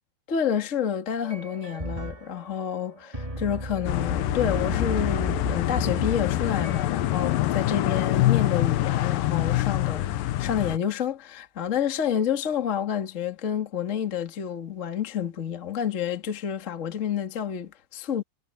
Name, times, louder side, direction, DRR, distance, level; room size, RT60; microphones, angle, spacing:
voice 1, 0.3-18.2, left 8 dB, 40° left, 1.0 m, -29 dB
sound 1, 1.2-6.8, right 1 dB, 10° right, 1.6 m, -36 dB
sound 2, 3.8-10.8, left 14 dB, 85° left, 2.0 m, -25 dB
omnidirectional pair, 5.4 m